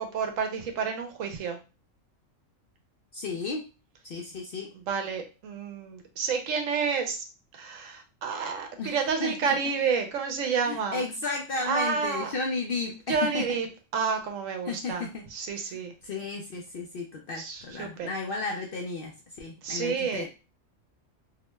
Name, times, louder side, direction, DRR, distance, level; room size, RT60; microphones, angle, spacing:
voice 1, 0.0-1.6 4.9-7.2 7.5-11.0 11.6-12.3 13.1-13.7 13.9-15.9 17.3-18.1 19.6-20.3, right 5 dB, 75° right, 5 dB, 1.0 m, -30 dB
voice 2, 3.1-3.6 4.0-4.7 8.8-9.3 10.6-13.5 14.7-15.2 15.7-19.1 19.4-20.3, left 3 dB, 60° left, 0 dB, 0.6 m, -33 dB
2.8 x 2.1 x 3.0 m, 0.30 s
omnidirectional pair, 1.4 m